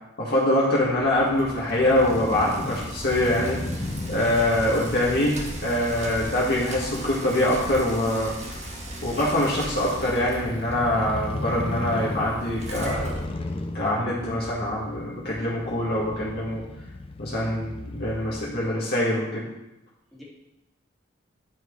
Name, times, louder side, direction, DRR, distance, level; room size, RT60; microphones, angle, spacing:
voice 1, 0.2-3.6 4.1-8.4 9.0-13.1 13.7-16.6 17.2-19.5, left 1 dB, 55° left, -6 dB, 2.0 m, -24 dB
Crow / Motorcycle, 0.8-18.7, left 2 dB, 30° left, 0.5 m, -36 dB
Bicycle, 0.8-14.0, right 1 dB, 35° right, 1.4 m, -39 dB
voice 2, 12.7-13.3 20.1-20.2, left 1 dB, ahead, -7 dB, 2.3 m, -43 dB
11.0 x 4.7 x 4.8 m, 0.92 s
head